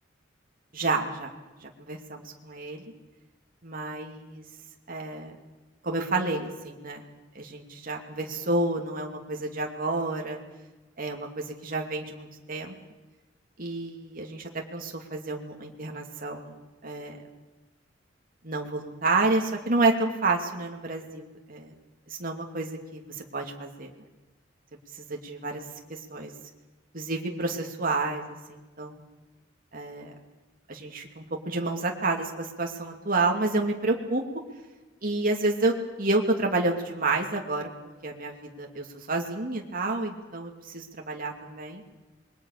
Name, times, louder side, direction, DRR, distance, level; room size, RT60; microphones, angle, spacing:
voice 1, 0.7-1.3 1.6-2.8 3.6-4.4 4.9-5.3 5.8-7.0 7.3-10.4 11.0-12.7 13.6-16.6 16.8-17.2 18.4-21.7 22.1-23.9 24.9-25.6 25.9-26.3 26.9-29.0 29.7-30.1 30.7-34.2 35.0-37.7 38.0-41.8, right 2 dB, 50° right, 1 dB, 2.8 m, -29 dB
27.5 x 22.0 x 6.8 m, 1.2 s
head